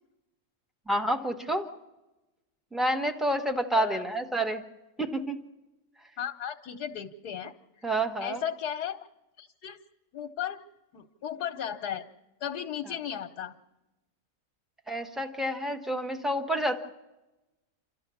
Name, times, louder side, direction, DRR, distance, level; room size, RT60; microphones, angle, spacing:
voice 1, 0.9-1.7 2.7-4.6 5.0-5.3 7.8-8.4 14.9-16.8, right 1 dB, ahead, 5 dB, 1.2 m, -29 dB
voice 2, 3.7-4.1 6.2-7.9 8.2-9.0 9.4-9.8 10.1-10.6 10.9-12.0 12.4-13.5, left 9 dB, 85° left, 3 dB, 1.5 m, -35 dB
28.0 x 13.0 x 7.0 m, 1.0 s
omnidirectional pair, 1.6 m